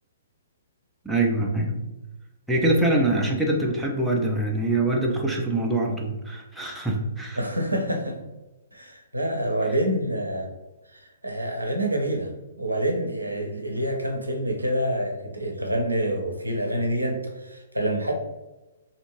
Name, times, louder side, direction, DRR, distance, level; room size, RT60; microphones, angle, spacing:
voice 1, 1.0-1.8 2.5-7.4, right 2 dB, 5° right, -2 dB, 0.4 m, -24 dB
voice 2, 7.4-8.2 8.7-10.5 10.9-12.3 12.6-18.1, right 1 dB, 85° right, 2 dB, 0.6 m, -27 dB
2.7 x 2.5 x 2.8 m, 1.0 s
figure-of-eight pair, 120°, 0 cm